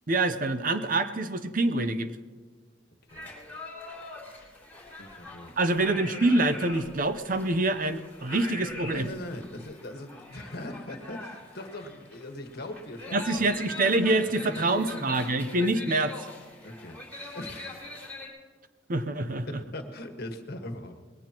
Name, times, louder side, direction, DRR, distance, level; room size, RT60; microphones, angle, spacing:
voice 1, 0.1-2.1 5.6-9.1 13.1-16.2 18.9-19.5, right 2 dB, 45° right, 10 dB, 0.7 m, -26 dB
sound 1, 3.1-18.3, left 2 dB, 10° left, 3.4 m, -43 dB
voice 2, 5.0-5.6 8.9-13.5 14.4-15.1 15.6-15.7 16.6-17.9 19.5-21.0, left 1 dB, 55° left, 5 dB, 1.5 m, -40 dB
20.5 x 17.0 x 3.0 m, 1.5 s
head